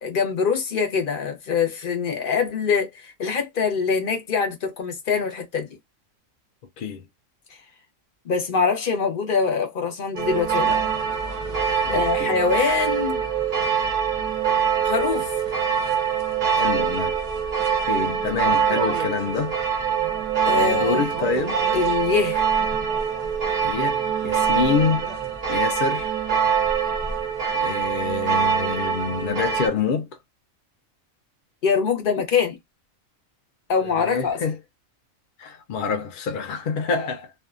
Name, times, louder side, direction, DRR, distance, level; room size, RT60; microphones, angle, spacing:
voice 1, 0.0-5.7 8.2-10.8 11.9-13.2 14.8-15.3 20.4-21.0 21.7-22.4 31.6-32.6 33.7-34.4, left 5 dB, 45° left, 0.8 m, -24 dB
sound 1, 10.2-29.7, right 7 dB, 50° right, 0.4 m, -24 dB
voice 2, 11.9-12.4 16.5-17.2 17.9-19.6 20.5-21.8 23.6-25.1 25.5-26.1 27.5-30.2 33.8-34.6 35.4-37.3, left 5 dB, 75° left, 0.4 m, -27 dB
2.6 x 2.2 x 2.4 m
omnidirectional pair, 1.4 m